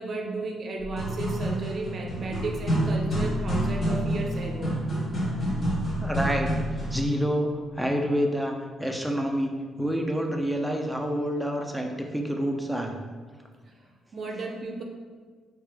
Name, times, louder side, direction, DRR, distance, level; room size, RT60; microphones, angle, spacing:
voice 1, 0.0-4.8 13.7-14.8, right 2 dB, 50° right, 2 dB, 0.6 m, -34 dB
sound 1, 0.8-7.1, right 1 dB, 45° left, 1.5 m, -28 dB
voice 2, 6.0-6.5 6.9-7.5 7.8-9.5 9.8-12.9 14.3-14.4, equal, ahead, 2 dB, 0.6 m, -28 dB
4.8 x 2.9 x 3.4 m, 1.5 s
cardioid pair, 90°, 0 cm